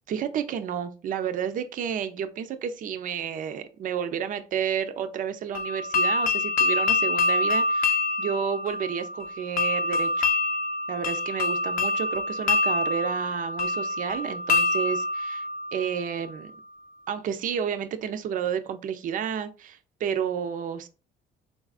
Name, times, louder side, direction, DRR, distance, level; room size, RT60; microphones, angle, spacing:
voice 1, 0.1-10.2 10.9-16.5 17.1-20.9, right 8 dB, 50° right, 0.5 m, -31 dB
sound 1, 5.6-16.4, left 3 dB, 55° left, 0.6 m, -26 dB
3.9 x 2.4 x 2.4 m
cardioid pair, 110°, 17 cm